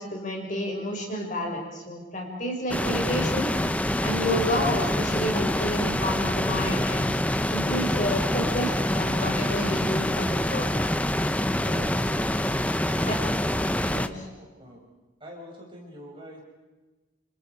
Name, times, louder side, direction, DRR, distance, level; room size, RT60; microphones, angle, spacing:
voice 1, 0.0-3.5 4.0-7.1 7.5-10.7 11.7-11.9 13.1-13.2 13.9-14.2, left 1 dB, 40° left, 0 dB, 5.9 m, -30 dB
sound 1, 2.7-14.1, left 1 dB, 5° left, 0.7 m, -26 dB
voice 2, 12.6-13.5 13.9-14.8 15.2-16.4, equal, 25° right, -2 dB, 6.7 m, -45 dB
29.0 x 28.5 x 4.9 m, 1.2 s
head